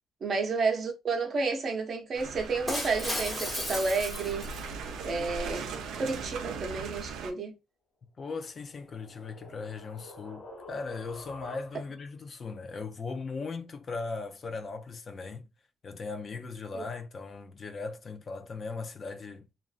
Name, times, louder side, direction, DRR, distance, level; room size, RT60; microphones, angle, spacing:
voice 1, 0.2-4.5 5.0-5.7 5.9-7.5 16.7-16.8, right 4 dB, 50° right, 0.6 m, -31 dB
sound 1, 2.1-7.3, right 5 dB, 85° right, 0.4 m, -39 dB
Shatter, 2.7-5.1, left 1 dB, 10° left, 1.1 m, -35 dB
voice 2, 5.2-5.7 8.2-15.4 15.8-19.4, left 4 dB, 45° left, 0.4 m, -38 dB
sound 2, 8.4-12.1, left 2 dB, 70° left, 0.8 m, -49 dB
2.5 x 2.1 x 2.4 m
cardioid pair, 90°, 0 cm